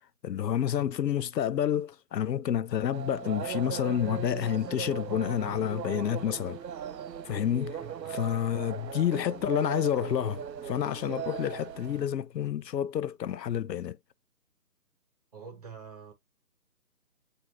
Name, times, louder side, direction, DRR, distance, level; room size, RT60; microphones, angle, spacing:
voice 1, 0.2-6.6 7.2-7.8 8.1-14.0, left 10 dB, 85° left, 0.6 m, -29 dB
sound 1, 2.9-12.0, right 8 dB, 85° right, 0.7 m, -38 dB
voice 2, 7.8-8.2 15.3-16.1, right 6 dB, 25° right, 1.0 m, -46 dB
7.8 x 2.6 x 2.6 m
figure-of-eight pair, 150°, 48 cm